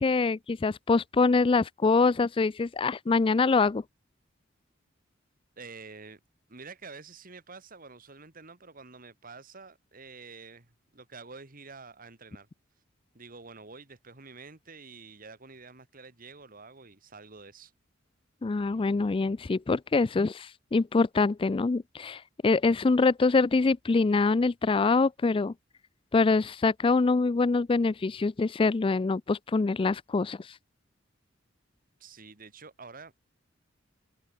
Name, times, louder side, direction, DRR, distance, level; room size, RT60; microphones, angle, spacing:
voice 1, 0.0-3.8 18.4-25.5 26.1-30.5, left 3 dB, 25° left, 0.4 m, -25 dB
voice 2, 5.6-6.2 6.5-12.5 13.1-17.7 32.0-33.1, right 4 dB, 45° right, 2.2 m, -48 dB
head